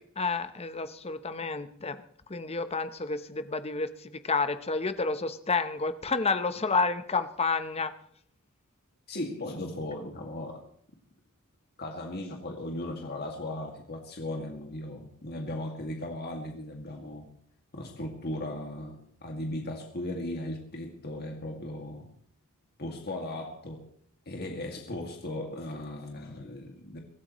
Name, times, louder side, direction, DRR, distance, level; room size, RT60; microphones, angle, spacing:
voice 1, 0.2-2.0 2.3-7.9, left 4 dB, 30° left, 11 dB, 0.9 m, -30 dB
voice 2, 9.1-10.7 11.8-17.3 17.7-22.1 22.8-23.9 24.3-27.0, left 1 dB, 50° left, 1 dB, 2.2 m, -37 dB
24.0 x 14.0 x 3.1 m, 0.62 s
head